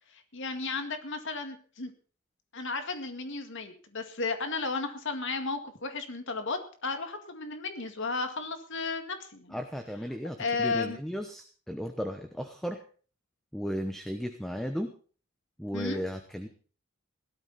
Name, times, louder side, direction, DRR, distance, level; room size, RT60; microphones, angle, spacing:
voice 1, 0.1-1.9 2.5-9.6 10.4-11.0 15.7-16.0, left 4 dB, 60° left, 7 dB, 2.0 m, -34 dB
voice 2, 9.5-12.8 13.5-14.9 15.6-16.5, equal, ahead, 6 dB, 1.0 m, -35 dB
17.5 x 12.5 x 4.2 m, 0.41 s
head